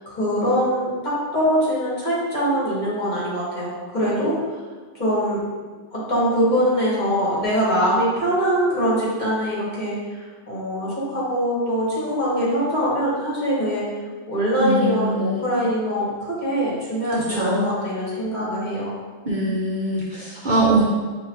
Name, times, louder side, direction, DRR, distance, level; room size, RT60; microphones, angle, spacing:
voice 1, 0.1-4.4 4.9-5.4 5.9-13.8 14.3-18.9, equal, 40° left, -7 dB, 1.3 m, -23 dB
voice 2, 14.6-15.3 17.1-17.7 19.2-20.8, right 1 dB, 50° right, -5 dB, 0.7 m, -22 dB
6.4 x 2.6 x 2.9 m, 1.4 s
omnidirectional pair, 1.2 m